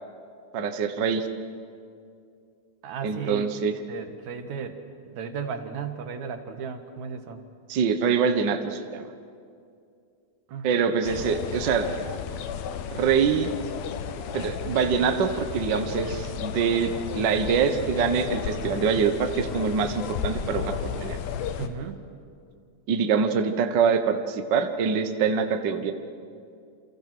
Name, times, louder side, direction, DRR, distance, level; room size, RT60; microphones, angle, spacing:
voice 1, 0.5-1.3 3.0-3.7 7.7-9.1 10.6-11.9 12.9-13.5 14.3-21.2 22.9-25.9, right 6 dB, 80° right, 7 dB, 1.0 m, -24 dB
voice 2, 2.8-3.5 3.9-4.8 5.0-7.4 10.5-10.7 21.6-22.0, right 6 dB, 60° right, 7 dB, 2.7 m, -35 dB
sound 1, 11.0-21.7, left 8 dB, 90° left, 3.0 m, -33 dB
28.5 x 27.5 x 6.1 m, 2.4 s
omnidirectional pair, 4.2 m